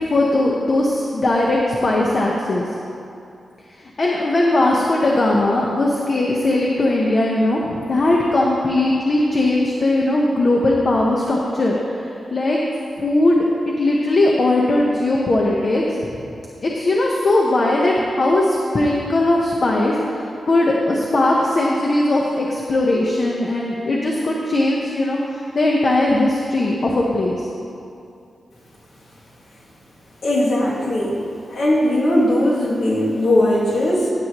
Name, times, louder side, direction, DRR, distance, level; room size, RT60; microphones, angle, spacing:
voice 1, 0.1-2.7 3.8-12.6 13.0-13.4 13.8-16.0 16.6-27.5, left 2 dB, 45° left, -2 dB, 1.0 m, -19 dB
voice 2, 30.2-31.2 31.5-34.1, left 1 dB, 75° left, -6 dB, 2.5 m, -18 dB
16.5 x 8.0 x 3.0 m, 2.6 s
wide cardioid pair, 120°, 0 cm